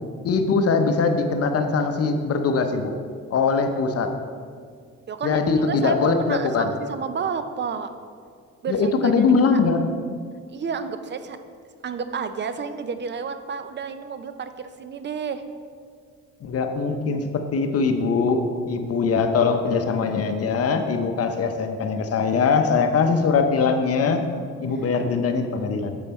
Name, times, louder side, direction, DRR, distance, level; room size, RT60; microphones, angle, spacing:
voice 1, 0.2-3.0 3.3-4.1 5.2-6.7 8.7-9.9 16.4-24.2 24.6-26.0, left 4 dB, 50° left, 7 dB, 0.7 m, -22 dB
voice 2, 5.1-7.9 8.6-9.1 9.5-9.6 10.5-11.4 11.8-15.4, right 6 dB, 40° right, 10 dB, 0.5 m, -30 dB
7.0 x 5.2 x 4.2 m, 2.1 s
cardioid pair, 90°, 30 cm